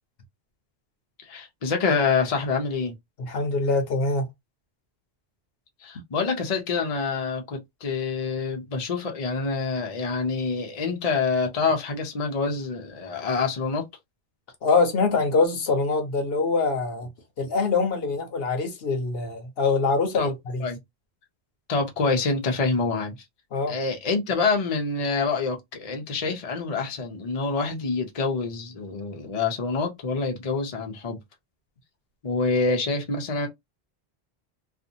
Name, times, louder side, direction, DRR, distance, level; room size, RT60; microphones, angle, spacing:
voice 1, 1.2-2.9 5.8-13.8 20.1-20.3 20.6-20.8 21.7-23.2 23.7-31.2 32.2-33.5, left 4 dB, 40° left, 0.7 m, -26 dB
voice 2, 3.3-4.3 14.6-17.1 17.4-20.6 23.5-23.7, left 4 dB, 65° left, 0.9 m, -24 dB
2.6 x 2.5 x 2.6 m
omnidirectional pair, 1.1 m